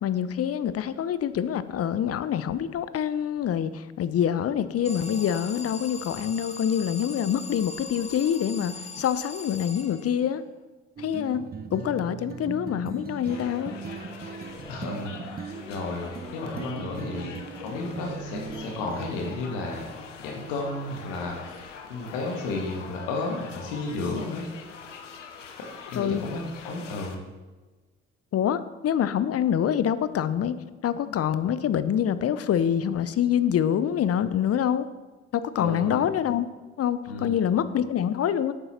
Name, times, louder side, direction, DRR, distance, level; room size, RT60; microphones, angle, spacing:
voice 1, 0.0-10.4 11.0-13.8 26.0-26.2 28.3-30.6 30.8-34.9 35.3-36.5 36.8-38.5, left 9 dB, 40° left, 14 dB, 0.7 m, -26 dB
Alarm, 4.8-10.4, left 3 dB, 20° left, 1.1 m, -40 dB
sound 1, 11.0-19.1, right 5 dB, 25° right, 0.7 m, -39 dB
sound 2, 13.2-27.2, left 5 dB, 85° left, 0.9 m, -44 dB
voice 2, 14.7-17.3 17.6-19.9 20.2-24.4 25.9-27.2 35.6-36.1 37.1-37.4, left 2 dB, 70° left, 0 dB, 2.0 m, -33 dB
11.5 x 8.9 x 4.3 m, 1.3 s
figure-of-eight pair, 45°, 35 cm